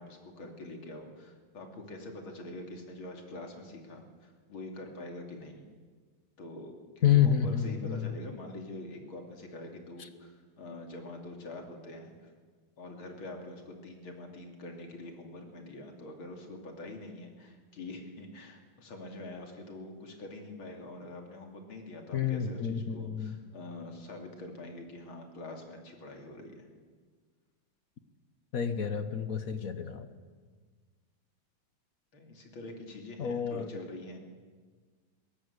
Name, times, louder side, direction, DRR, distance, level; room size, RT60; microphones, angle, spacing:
voice 1, 0.0-5.7 6.4-12.3 12.8-26.7 32.1-34.2, left 2 dB, 70° left, 3 dB, 3.5 m, -45 dB
voice 2, 7.0-8.1 10.0-10.1 22.1-23.4 28.5-30.1 33.2-33.7, left 9 dB, 50° left, 10 dB, 1.2 m, -29 dB
21.5 x 17.0 x 8.1 m, 1.5 s
omnidirectional pair, 2.4 m